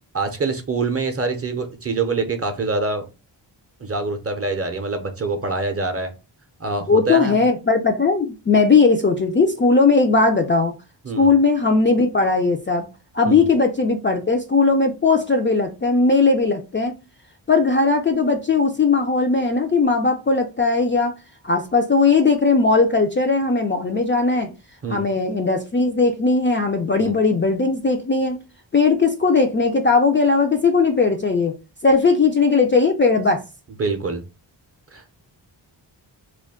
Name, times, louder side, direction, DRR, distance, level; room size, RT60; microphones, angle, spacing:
voice 1, 0.1-3.0 3.8-6.1 6.6-7.4 11.0-11.3 13.3-13.5 24.8-25.1 27.0-27.1 33.8-34.2 34.9-35.2, right 3 dB, 30° right, 0.6 m, -25 dB
voice 2, 6.9-10.7 11.2-12.8 13.1-16.9 17.5-21.1 21.4-24.5 24.9-28.4 28.7-31.5 31.8-33.4, left 4 dB, 25° left, 0.3 m, -18 dB
2.3 x 2.2 x 3.5 m
cardioid pair, 55°, 47 cm